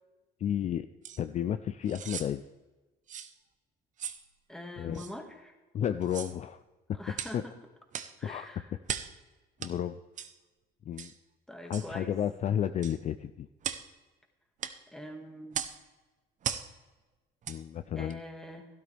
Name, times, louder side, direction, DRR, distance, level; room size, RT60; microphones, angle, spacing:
voice 1, 0.4-0.9 1.2-2.4 4.8-5.0 5.7-6.6 6.9-7.0 7.3-7.4 8.2-8.6 9.6-10.0 10.9-11.1 11.7-13.5 17.5-18.2, left 9 dB, 45° left, 11 dB, 0.4 m, -32 dB
sound 1, 1.0-1.2 1.9-2.3 3.1-3.3 4.0-4.2 4.9-5.1 6.0-6.4 7.1-7.4 7.9-8.2 8.8-9.2 9.6-9.7 10.2-10.3 11.0-11.2 11.7-11.9 12.8-13.0 13.6-13.9 14.6-14.8 15.5-15.8 16.4-16.7 17.4-17.6 18.1-18.2, right 8 dB, 45° right, 0.8 m, -37 dB
voice 2, 4.5-5.5 6.9-7.5 8.2-8.7 11.5-12.1 14.9-15.6 18.0-18.7, left 1 dB, 5° left, 4 dB, 1.8 m, -44 dB
12.5 x 12.5 x 3.4 m, 1.2 s
cardioid pair, 110°, 17 cm